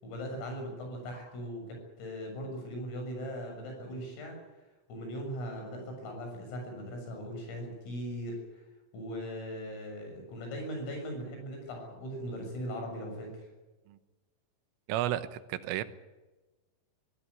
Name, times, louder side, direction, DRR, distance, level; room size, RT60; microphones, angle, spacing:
voice 1, 0.0-4.4 4.9-8.6 8.9-13.5, equal, 90° left, 3 dB, 9.6 m, -39 dB
voice 2, 14.9-15.8, right 13 dB, 80° right, 12 dB, 3.6 m, -32 dB
23.5 x 16.0 x 9.7 m, 1.2 s
omnidirectional pair, 5.8 m